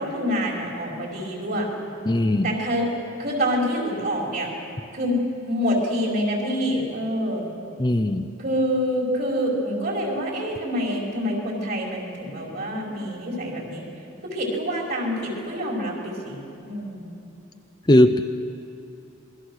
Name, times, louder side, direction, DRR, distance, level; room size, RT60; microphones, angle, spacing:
voice 1, 0.0-1.7 2.4-2.9 3.2-4.5 4.9-5.1 5.4-7.5 8.4-13.8 14.2-17.1, equal, 45° right, -1 dB, 5.3 m, -26 dB
voice 2, 2.0-2.5 7.8-8.3 17.9-18.2, left 1 dB, 20° left, 6 dB, 0.6 m, -18 dB
27.0 x 21.5 x 6.5 m, 2.8 s
head